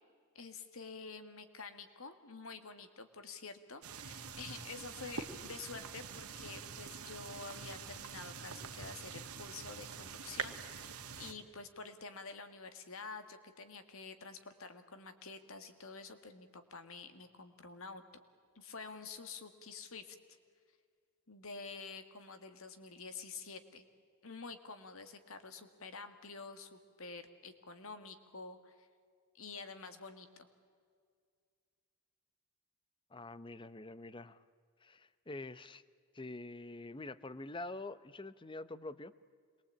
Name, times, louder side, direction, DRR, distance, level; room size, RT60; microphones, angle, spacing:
voice 1, 0.3-18.0 18.6-20.2 21.3-23.9 24.2-28.9 29.3-30.5, left 4 dB, 70° left, 9 dB, 2.1 m, -49 dB
sound 1, 3.8-11.3, right 6 dB, 85° right, 1.9 m, -45 dB
voice 2, 33.1-34.4 34.8-35.8 36.1-39.1, left 2 dB, 20° left, 16 dB, 0.7 m, -46 dB
27.0 x 22.0 x 8.6 m, 2.1 s
head